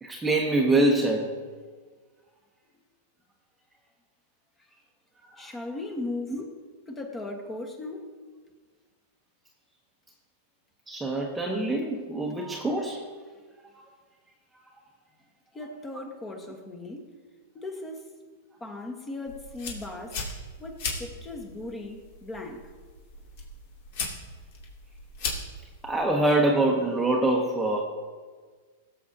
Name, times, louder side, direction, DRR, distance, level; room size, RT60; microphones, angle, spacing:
voice 1, 0.0-1.3 5.3-5.5 6.3-6.4 10.9-13.0 25.8-27.8, right 2 dB, 10° right, 0 dB, 1.0 m, -24 dB
voice 2, 5.4-6.4 6.9-8.1 15.5-17.0 17.5-18.1 18.6-20.2 20.6-22.7, left 2 dB, 15° left, 3 dB, 1.5 m, -37 dB
sound 1, 19.3-26.1, left 3 dB, 60° left, 2.8 m, -38 dB
18.5 x 7.6 x 2.9 m, 1.5 s
hypercardioid pair, 135°, 0 cm